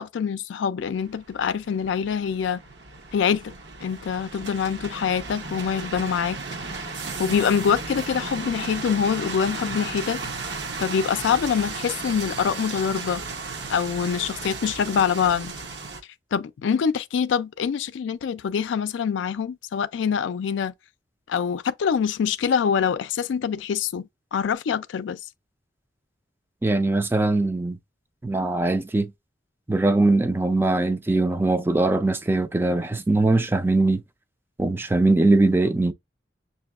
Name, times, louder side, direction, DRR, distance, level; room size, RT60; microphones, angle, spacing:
voice 1, 0.0-2.6 3.1-3.5 3.8-6.4 7.2-10.2 10.8-13.2 13.7-15.5 16.3-20.7 21.3-24.0 24.3-25.2, left 7 dB, 90° left, 0.3 m, -25 dB
sound 1, 0.8-16.0, right 3 dB, 65° right, 0.8 m, -35 dB
voice 2, 26.6-27.8 28.2-29.1 29.7-34.0 34.6-35.9, right 2 dB, 10° right, 0.3 m, -21 dB
6.6 x 2.6 x 2.3 m
head